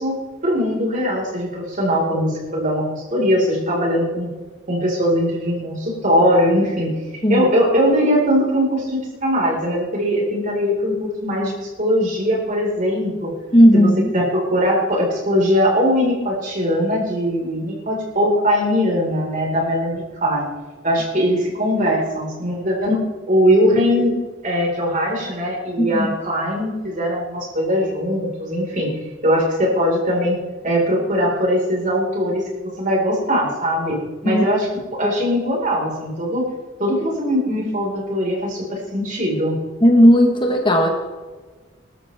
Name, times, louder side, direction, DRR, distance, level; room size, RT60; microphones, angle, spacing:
voice 1, 0.0-4.3 4.7-6.9 7.3-13.3 13.7-20.5 20.8-23.0 23.3-24.1 24.4-28.9 29.2-30.4 30.6-36.5 36.8-39.6, equal, 40° right, -2 dB, 4.7 m, -20 dB
voice 2, 13.5-14.1 25.8-26.1 34.2-34.4 39.8-40.9, equal, 25° left, 3 dB, 1.4 m, -14 dB
21.0 x 13.0 x 3.5 m, 1.4 s
head